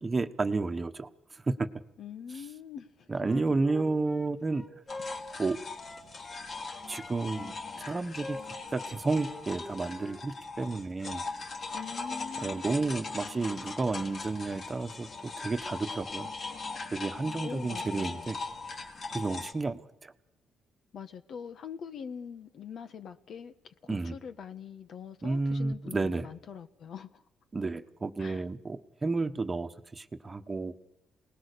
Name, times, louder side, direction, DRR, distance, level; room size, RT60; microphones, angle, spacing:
voice 1, 0.0-1.7 3.1-4.6 5.4-5.6 6.9-7.5 7.8-8.4 8.7-11.2 12.4-16.3 16.9-18.4 19.1-20.1 23.9-24.1 25.2-26.3 27.5-30.7, right 3 dB, 25° right, 1.3 m, -31 dB
voice 2, 2.0-3.4 11.7-12.6 17.4-18.3 20.9-27.2 28.2-28.4, left 7 dB, 65° left, 1.5 m, -43 dB
Wind instrument woodwind instrument, 3.2-6.5 6.8-10.2, left 2 dB, 25° left, 4.3 m, -45 dB
sound 1, 4.9-19.5, left 3 dB, 45° left, 3.2 m, -40 dB
28.0 x 19.5 x 6.9 m
cardioid pair, 90°, 0 cm